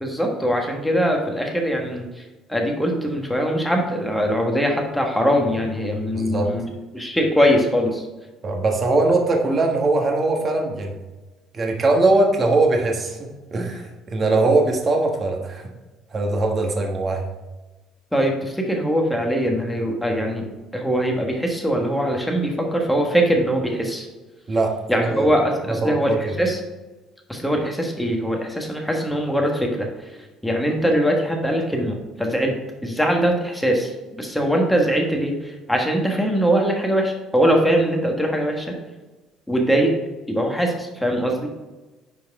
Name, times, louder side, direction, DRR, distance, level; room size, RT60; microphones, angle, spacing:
voice 1, 0.0-2.2 2.5-6.6 6.9-8.0 18.1-20.5 20.7-24.1 24.9-26.6 27.3-30.1 30.4-32.5 32.8-38.7 39.5-39.9 40.3-41.5, equal, ahead, 1 dB, 1.5 m, -22 dB
voice 2, 6.1-6.5 8.4-10.9 11.5-15.7 16.1-17.2 24.5-25.3 25.7-26.4, right 2 dB, 30° right, 1 dB, 1.5 m, -21 dB
10.0 x 4.6 x 3.7 m, 1.2 s
cardioid pair, 130°, 0 cm